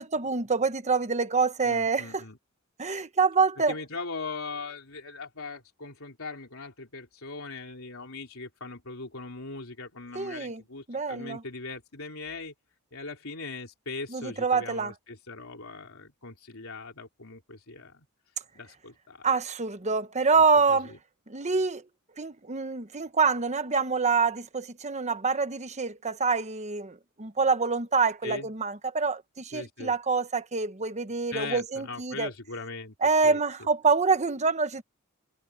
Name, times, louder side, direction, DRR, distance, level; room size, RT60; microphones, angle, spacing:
voice 1, 0.0-2.2 2.8-3.7 10.1-10.6 10.9-11.4 14.1-14.9 19.2-20.9 21.3-21.8 22.2-32.3 33.0-34.8, right 4 dB, 35° right, 1.2 m, -26 dB
voice 2, 1.6-2.4 3.7-12.5 12.9-18.1 18.5-19.3 20.3-20.4 20.7-21.0 28.2-28.5 29.5-29.9 31.3-33.0 33.2-33.4, left 3 dB, 70° left, 4.0 m, -40 dB
head